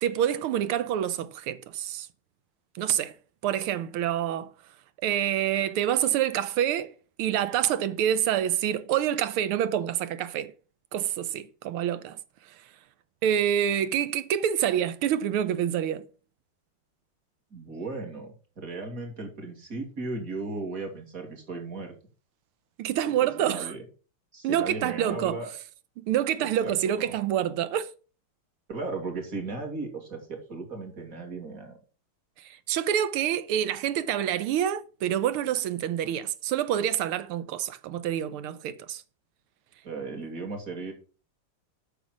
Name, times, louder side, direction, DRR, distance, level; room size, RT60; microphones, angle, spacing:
voice 1, 0.0-2.1 2.8-3.1 3.4-4.5 5.0-6.9 7.2-10.5 10.9-12.2 13.2-16.1 22.8-23.7 24.4-25.4 26.0-27.9 32.4-39.0, right 10 dB, 85° right, 1.7 m, -27 dB
voice 2, 17.5-21.9 23.0-23.8 24.3-25.5 26.6-27.1 28.7-31.8 39.8-40.9, right 3 dB, 40° right, 2.9 m, -36 dB
8.4 x 6.3 x 6.1 m
omnidirectional pair, 2.3 m